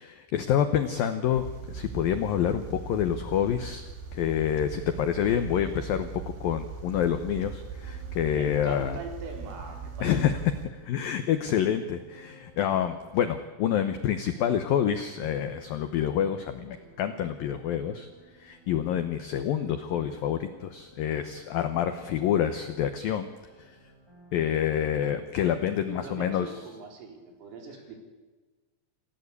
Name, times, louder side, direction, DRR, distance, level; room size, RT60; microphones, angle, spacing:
voice 1, 0.0-6.1 6.4-9.0 10.0-10.4 10.8-18.1 18.4-23.3 24.3-26.5, left 9 dB, 85° left, 9 dB, 2.0 m, -27 dB
sound 1, 1.3-10.7, right 6 dB, 65° right, 4.8 m, -40 dB
sound 2, 6.9-26.5, right 1 dB, 5° right, 5.1 m, -55 dB
voice 2, 8.3-10.1 25.9-28.0, right 4 dB, 90° right, 3 dB, 6.5 m, -42 dB
28.0 x 16.0 x 8.3 m, 1.3 s
omnidirectional pair, 5.7 m